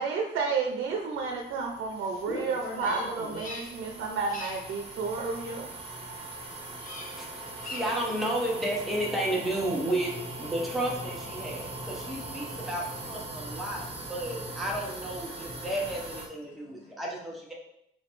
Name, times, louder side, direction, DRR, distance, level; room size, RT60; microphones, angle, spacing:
voice 1, 0.0-5.7, right 4 dB, 85° right, 0 dB, 0.6 m, -31 dB
sound 1, 1.1-16.3, right 2 dB, 25° right, 0.9 m, -41 dB
voice 2, 2.0-3.4 13.3-13.4 13.8-14.4 15.6-15.7 16.4-16.9, left 2 dB, 85° left, -1 dB, 0.8 m, -44 dB
Bird vocalization bird call bird song, 2.7-3.9 4.2-4.7 6.8-7.2 7.5-8.1, left 3 dB, 40° left, 0.6 m, -42 dB
voice 3, 7.7-17.5, right 1 dB, ahead, -4 dB, 0.8 m, -32 dB
4.3 x 3.1 x 3.0 m, 0.78 s
cardioid pair, 140°, 21 cm